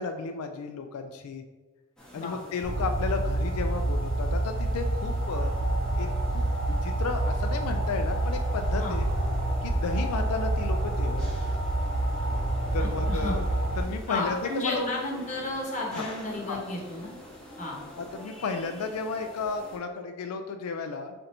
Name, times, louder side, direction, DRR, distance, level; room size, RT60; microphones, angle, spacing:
voice 1, 0.0-1.4 2.1-5.5 6.0-9.1 9.6-11.4 12.7-13.4 13.8-14.8 15.9-16.1 16.5-16.6 18.0-21.1, left 4 dB, 90° left, 6 dB, 0.4 m, -33 dB
sound 1, 2.0-19.8, left 1 dB, 5° left, 0.7 m, -47 dB
sound 2, 2.6-13.8, right 1 dB, 50° right, 0.6 m, -27 dB
voice 2, 12.8-13.3 14.1-17.1 17.6-17.8, left 2 dB, 35° left, -2 dB, 0.9 m, -32 dB
4.3 x 2.6 x 4.2 m, 1.3 s
head